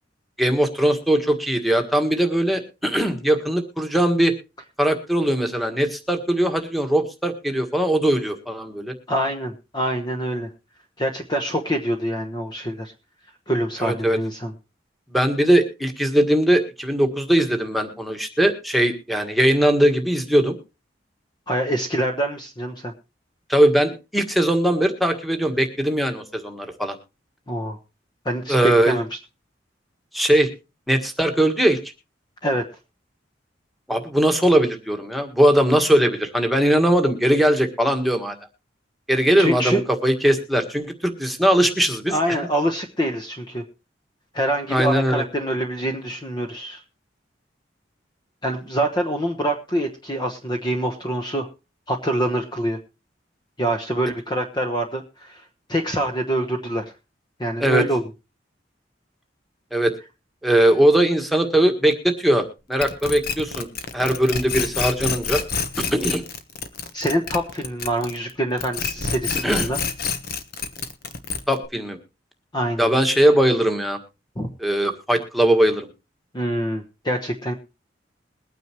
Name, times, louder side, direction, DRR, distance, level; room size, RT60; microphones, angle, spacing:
voice 1, 0.4-4.3 4.8-8.9 13.8-14.2 15.1-20.6 23.5-27.0 28.5-29.0 30.1-30.5 30.9-31.8 33.9-38.4 39.1-42.4 44.7-45.2 57.6-57.8 59.7-59.9 60.4-63.7 63.9-65.4 65.9-66.2 69.4-69.6 71.5-72.0 72.8-74.0 74.6-75.9, right 1 dB, ahead, 4 dB, 1.7 m, -20 dB
voice 2, 9.1-10.5 11.0-12.9 13.5-14.5 21.5-22.9 27.5-27.8 28.2-29.0 32.4-32.6 39.4-39.8 42.1-43.6 44.3-46.8 48.4-51.5 51.9-52.8 53.6-55.4 55.7-56.8 57.4-58.0 66.9-69.8 72.5-72.9 74.4-74.5 76.3-77.5, right 1 dB, 25° left, 5 dB, 1.1 m, -25 dB
sound 1, 62.8-68.3 68.6-71.7, left 5 dB, 55° left, 1.2 m, -27 dB
22.0 x 9.2 x 3.0 m, 0.29 s
head